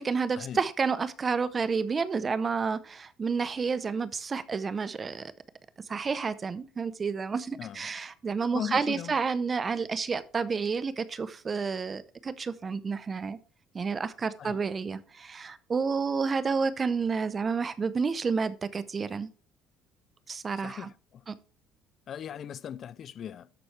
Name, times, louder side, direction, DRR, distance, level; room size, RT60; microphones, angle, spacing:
voice 1, 0.0-5.3 5.9-13.4 13.7-19.3 20.3-20.9 21.3-21.4, right 5 dB, 30° right, 0.8 m, -30 dB
voice 2, 7.5-7.9 8.5-9.2 14.4-14.6 20.6-21.3 22.1-23.5, left 9 dB, 50° left, 0.4 m, -38 dB
13.0 x 4.4 x 3.3 m
supercardioid pair, 95°, 0 cm